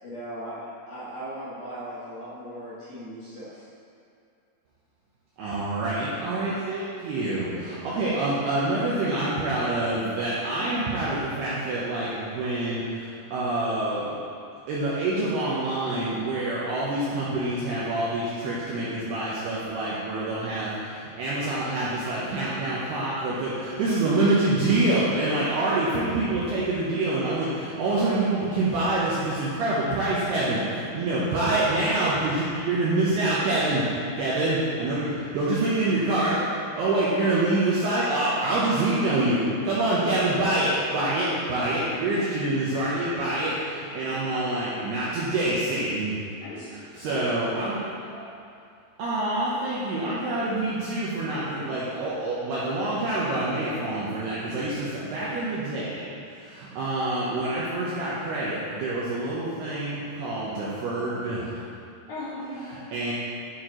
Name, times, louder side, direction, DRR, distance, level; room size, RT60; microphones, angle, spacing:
voice 1, 0.0-3.7, right 1 dB, 65° left, -12 dB, 2.1 m, -38 dB
voice 2, 5.4-14.2 14.7-33.8 34.2-36.4 36.8-46.2 47.0-47.7 49.0-61.6 62.9-63.1, right 2 dB, 80° right, -8 dB, 2.4 m, -26 dB
voice 3, 47.0-48.3 62.1-63.0, left 1 dB, 80° left, -9 dB, 4.5 m, -39 dB
11.0 x 4.5 x 3.8 m, 2.5 s
omnidirectional pair, 5.7 m